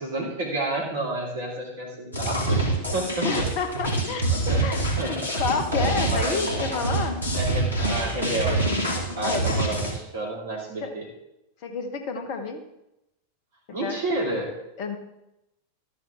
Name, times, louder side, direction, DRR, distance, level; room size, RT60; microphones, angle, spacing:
voice 1, 0.0-3.5 4.3-4.6 5.0-5.3 6.0-6.5 7.3-8.8 9.1-11.1 13.7-14.5, right 2 dB, 60° right, -2 dB, 3.3 m, -30 dB
sound 1, 2.1-9.9, right 2 dB, 90° right, 2.3 m, -26 dB
voice 2, 3.2-4.3 4.6-7.1 9.0-9.6 10.8-10.9 11.6-12.6 13.7-14.0 14.8-15.0, left 5 dB, 45° left, 7 dB, 1.2 m, -30 dB
12.5 x 10.0 x 3.7 m, 0.88 s
figure-of-eight pair, 90°, 0 cm